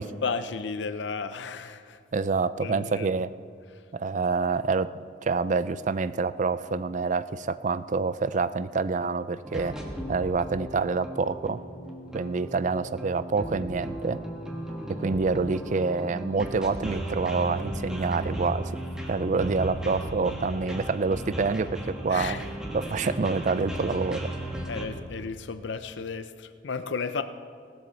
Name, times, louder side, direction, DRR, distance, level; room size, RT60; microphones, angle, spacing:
voice 1, 0.0-2.0 2.6-3.1 3.7-3.8 22.1-22.4 23.0-23.1 24.7-27.2, left 5 dB, 65° left, 10 dB, 0.5 m, -33 dB
voice 2, 2.1-3.3 3.9-4.9 5.2-9.8 10.1-11.6 12.1-14.2 14.9-18.8 19.1-22.4 22.7-24.3, right 4 dB, 40° right, 15 dB, 0.4 m, -27 dB
sound 1, 9.4-24.9, right 1 dB, 5° right, 1.5 m, -36 dB
18.0 x 12.5 x 4.0 m, 2.2 s
head